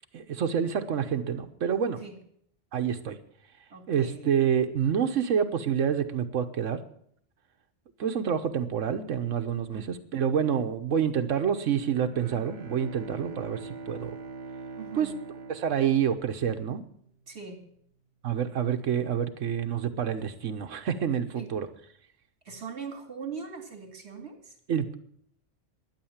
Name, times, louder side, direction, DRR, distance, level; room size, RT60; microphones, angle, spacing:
voice 1, 0.1-2.0 2.7-3.2 3.9-6.8 8.0-9.8 10.1-14.1 15.0-15.1 15.5-16.8 18.2-21.7 24.7-24.9, right 8 dB, 80° right, 7 dB, 1.3 m, -27 dB
voice 2, 3.7-4.4 9.7-9.9 14.8-15.1 17.3-17.6 21.3-21.6 22.4-24.6, right 5 dB, 60° right, 4 dB, 2.5 m, -41 dB
Bowed string instrument, 12.0-16.9, right 4 dB, 45° right, 0.8 m, -43 dB
12.0 x 9.6 x 7.2 m, 0.67 s
omnidirectional pair, 1.3 m